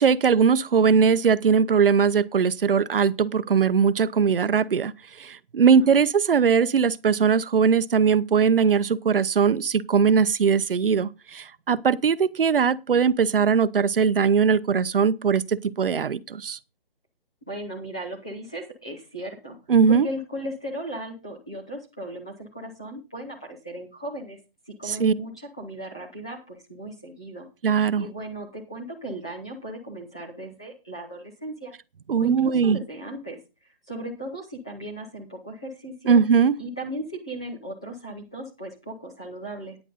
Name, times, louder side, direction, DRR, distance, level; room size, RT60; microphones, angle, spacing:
voice 1, 0.0-4.9 5.2-16.6 19.7-20.1 24.9-25.1 27.6-28.1 32.1-32.8 36.1-36.6, right 6 dB, 65° right, 0.8 m, -20 dB
voice 2, 5.6-6.0 17.5-19.6 19.9-24.4 24.7-27.5 28.0-31.7 32.1-36.2 36.6-39.8, right 1 dB, 5° left, 0.6 m, -36 dB
10.0 x 9.9 x 3.9 m
hypercardioid pair, 175°, 29 cm